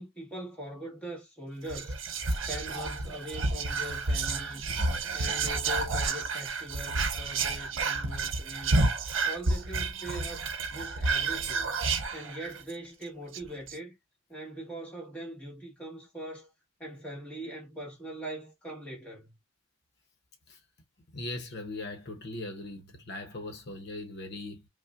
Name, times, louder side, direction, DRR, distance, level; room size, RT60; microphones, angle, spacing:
voice 1, 0.0-2.0 2.3-4.7 5.1-8.8 9.2-11.8 12.1-14.0 14.3-16.5 16.8-19.3, right 1 dB, 5° left, 1.5 m, -41 dB
Whispering, 1.7-12.7 13.0-13.1 13.3-13.8, right 3 dB, 70° right, 0.8 m, -30 dB
voice 2, 21.1-24.7, left 2 dB, 55° left, 0.8 m, -39 dB
5.3 x 2.2 x 2.4 m
head